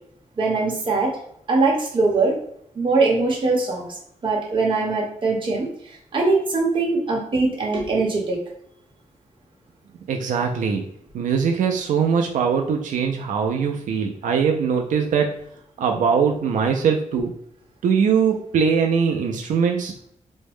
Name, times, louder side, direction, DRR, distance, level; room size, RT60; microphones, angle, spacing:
voice 1, 0.4-1.1 1.5-2.4 2.7-3.8 4.2-5.7 6.1-8.4, right 3 dB, 40° right, -1 dB, 0.9 m, -21 dB
voice 2, 10.1-10.8 11.1-15.4 15.8-17.3 17.8-20.0, right 6 dB, 90° right, 3 dB, 0.4 m, -21 dB
3.5 x 2.1 x 3.4 m, 0.71 s
wide cardioid pair, 165°, 13 cm